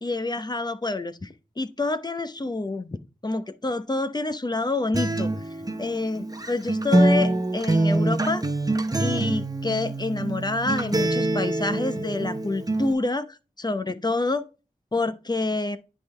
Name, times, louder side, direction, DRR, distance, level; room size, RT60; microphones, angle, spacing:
voice 1, 0.0-3.0 3.2-8.4 9.0-14.5 14.9-15.8, left 2 dB, 30° left, 0.7 m, -27 dB
Acoustic guitar, 4.9-12.9, right 2 dB, 25° right, 0.8 m, -25 dB
10.0 x 3.7 x 3.2 m
wide cardioid pair, 45°, 14 cm